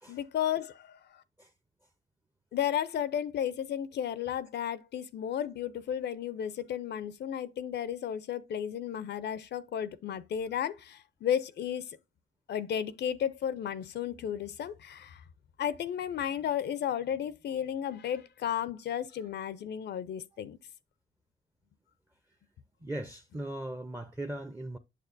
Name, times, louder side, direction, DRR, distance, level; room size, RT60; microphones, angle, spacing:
voice 1, 0.1-1.2 2.5-12.0 12.5-15.2 15.6-20.6, left 9 dB, 60° left, 0.5 m, -33 dB
voice 2, 22.8-24.8, right 1 dB, 10° right, 0.6 m, -38 dB
6.6 x 6.5 x 2.5 m
cardioid pair, 90°, 20 cm